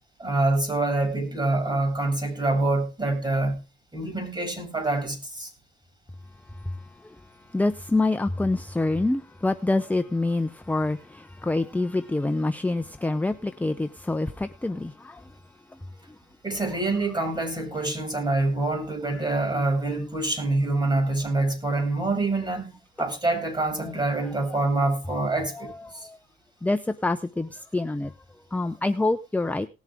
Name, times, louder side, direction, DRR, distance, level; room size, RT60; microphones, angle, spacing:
voice 1, 0.2-3.6 3.9-5.5 16.4-22.7 23.0-26.1, right 2 dB, 25° right, 7.1 m, -26 dB
voice 2, 7.5-15.2 25.6-25.7 26.0-26.2 26.6-28.1 28.5-29.7, left 2 dB, 10° left, 0.7 m, -26 dB
19.0 x 7.3 x 3.6 m
cardioid pair, 90°, 20 cm